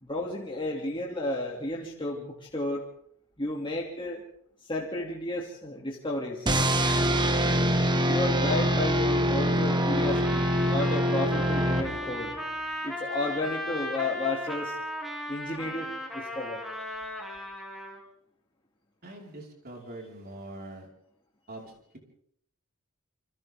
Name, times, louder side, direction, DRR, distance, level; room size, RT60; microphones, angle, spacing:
voice 1, 0.0-2.8 3.4-4.2 4.7-6.5 8.1-12.3 12.8-14.8 15.3-17.2, left 2 dB, 20° left, -2 dB, 2.8 m, -32 dB
sound 1, 6.5-12.3, equal, 20° right, 1.5 m, -25 dB
Trumpet, 9.7-18.0, left 1 dB, ahead, 3.2 m, -36 dB
voice 2, 19.0-20.9 21.5-22.0, right 1 dB, 45° right, 0 dB, 5.1 m, -43 dB
28.5 x 25.5 x 3.8 m, 0.67 s
head